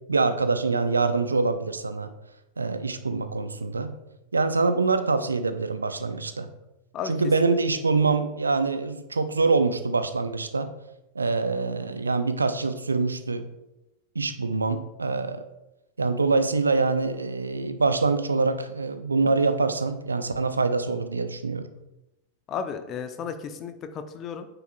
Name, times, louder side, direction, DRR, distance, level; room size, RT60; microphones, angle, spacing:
voice 1, 0.1-2.1 2.6-3.9 4.3-6.5 7.0-10.7 11.2-13.4 14.1-15.4 16.0-21.7, right 3 dB, 75° right, 10 dB, 0.5 m, -25 dB
voice 2, 22.5-24.5, left 7 dB, 30° left, 8 dB, 0.7 m, -34 dB
9.3 x 6.9 x 2.3 m, 0.94 s
figure-of-eight pair, 90°, 0 cm